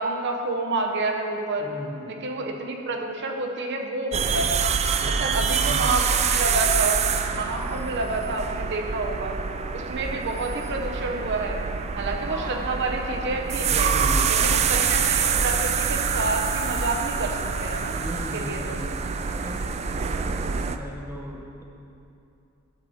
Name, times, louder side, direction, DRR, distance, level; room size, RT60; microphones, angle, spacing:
voice 1, 0.0-1.7 2.2-4.6 5.0-6.0 6.3-7.0 7.3-9.4 9.7-11.6 11.9-13.9 14.4-18.0 18.3-18.8, right 2 dB, 55° right, 2 dB, 0.7 m, -29 dB
voice 2, 1.6-2.2 5.0-6.2 7.5-7.8 12.3-12.7 13.7-14.8 18.0-21.6, equal, 10° right, -1 dB, 0.8 m, -38 dB
sound 1, 4.1-20.8, right 6 dB, 30° right, 0.3 m, -26 dB
9.5 x 7.0 x 4.1 m, 2.6 s
head